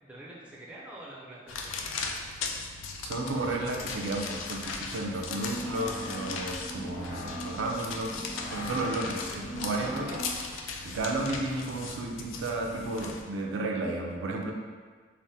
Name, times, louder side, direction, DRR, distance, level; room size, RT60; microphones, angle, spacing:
voice 1, 0.0-2.3 9.3-9.4, right 1 dB, 5° right, -6 dB, 0.4 m, -47 dB
sound 1, 1.5-13.2, left 4 dB, 90° left, 0.3 m, -38 dB
voice 2, 3.0-8.1 8.5-10.2 10.8-14.5, right 2 dB, 85° right, 1 dB, 0.4 m, -33 dB
sound 2, 5.3-10.5, equal, 40° left, 1.4 m, -40 dB
3.3 x 2.0 x 2.7 m, 1.5 s
head